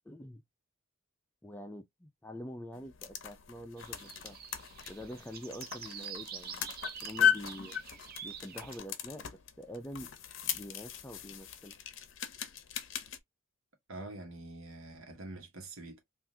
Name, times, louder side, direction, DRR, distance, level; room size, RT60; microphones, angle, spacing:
voice 1, 0.1-0.4 1.4-4.4 4.9-7.7 8.2-9.3 9.6-10.1 10.4-11.7, equal, 10° left, 0.4 m, -46 dB
sound 1, 2.7-13.2, left 9 dB, 65° left, 0.6 m, -37 dB
sound 2, 3.8-8.8, right 8 dB, 45° right, 0.6 m, -46 dB
voice 2, 13.9-16.0, right 2 dB, 75° right, 1.3 m, -45 dB
3.5 x 2.5 x 2.7 m
head